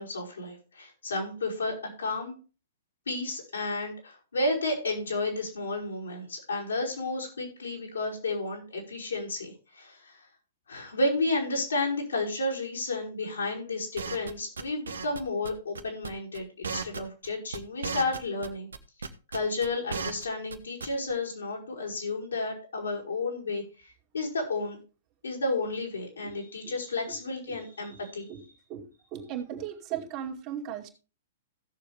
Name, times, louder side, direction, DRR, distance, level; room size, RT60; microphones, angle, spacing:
voice 1, 0.0-2.3 3.1-10.2 10.7-18.7 19.0-19.1 19.3-24.8 25.2-28.3, left 2 dB, 80° left, -2 dB, 5.4 m, -32 dB
sound 1, 14.0-15.2 15.4-15.5 15.7-16.4 16.6-17.3 17.5-18.5 18.7-20.2 20.5-20.6 20.8-21.1, right 5 dB, 75° right, 1.2 m, -35 dB
voice 2, 28.7-30.9, right 9 dB, 35° right, 2 dB, 2.4 m, -37 dB
16.0 x 7.0 x 3.5 m, 0.33 s
figure-of-eight pair, 115°, 0 cm